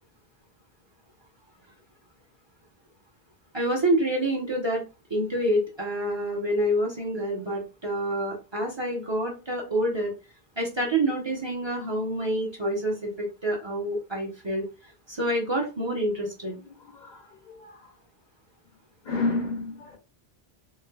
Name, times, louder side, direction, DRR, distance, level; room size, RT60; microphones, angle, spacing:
voice 1, 3.5-4.8 5.1-10.1 10.6-14.6 15.1-16.5, right 1 dB, 30° right, 0.8 m, -27 dB
voice 2, 16.8-17.9 19.0-20.0, left 3 dB, 50° left, 0.7 m, -31 dB
3.2 x 3.0 x 2.3 m
omnidirectional pair, 1.1 m